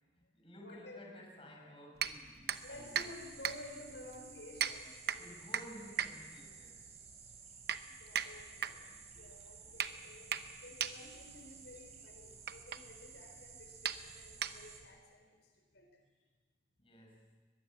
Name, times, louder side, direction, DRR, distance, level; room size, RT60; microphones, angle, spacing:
voice 1, 0.1-3.0 5.1-7.0 16.8-17.4, equal, 30° left, 1 dB, 5.6 m, -54 dB
voice 2, 0.6-1.0 2.6-5.2 7.9-16.0, left 1 dB, 75° left, 3 dB, 4.3 m, -53 dB
sound 1, 2.0-15.0, right 8 dB, 60° right, 1.0 m, -41 dB
sound 2, 2.5-14.8, right 6 dB, 40° right, 4.3 m, -55 dB
22.5 x 21.5 x 7.5 m, 1.4 s
head